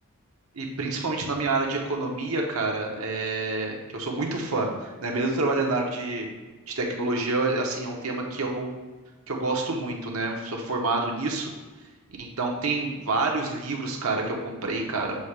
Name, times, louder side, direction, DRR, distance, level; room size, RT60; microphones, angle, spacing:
voice 1, 0.5-6.3 6.7-8.7 9.3-11.5 12.2-15.2, right 3 dB, 80° right, 0 dB, 1.1 m, -28 dB
7.1 x 2.9 x 4.8 m, 1.3 s
head